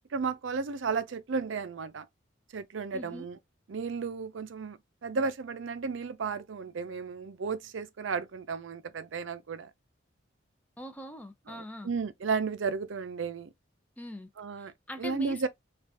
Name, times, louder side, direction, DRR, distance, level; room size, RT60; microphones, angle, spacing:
voice 1, 0.1-2.1 2.5-3.4 3.7-9.7 11.5-13.5 14.4-14.7 15.0-15.5, right 5 dB, 80° right, 0.5 m, -33 dB
voice 2, 2.9-3.3 10.8-11.9 14.0-14.3 14.6-15.5, left 1 dB, 10° left, 0.5 m, -42 dB
2.5 x 2.4 x 3.4 m
head